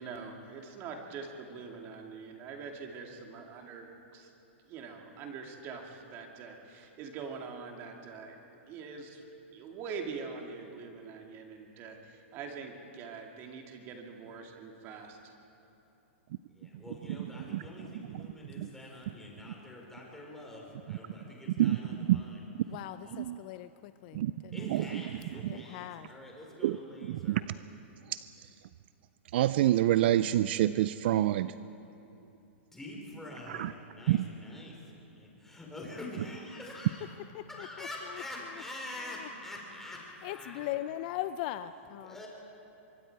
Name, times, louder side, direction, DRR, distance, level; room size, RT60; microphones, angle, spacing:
voice 1, 0.0-4.3 4.7-8.4 8.7-9.3 9.5-15.3, right 5 dB, 30° right, 2 dB, 2.3 m, -44 dB
voice 2, 16.5-22.4 23.0-23.2 24.5-27.5 32.7-34.8 35.1-37.1 37.5-40.6 42.0-42.3, left 1 dB, 5° left, -2 dB, 4.2 m, -45 dB
voice 3, 17.5-18.3 18.6-18.7 21.6-21.8 22.1-22.2 23.1-23.4 24.1-24.3 24.6-25.0 25.4-25.6 26.6-26.8 27.1-27.4 28.1-28.2 29.3-31.5 33.5-33.7 34.1-34.3, right 13 dB, 55° right, 14 dB, 0.4 m, -27 dB
voice 4, 22.7-24.7 25.3-26.1 37.3-38.2 38.5-38.6 39.0-39.3 40.2-42.2, left 14 dB, 40° left, 12 dB, 0.5 m, -40 dB
24.0 x 23.0 x 4.7 m, 2.9 s
hypercardioid pair, 145°, 7 cm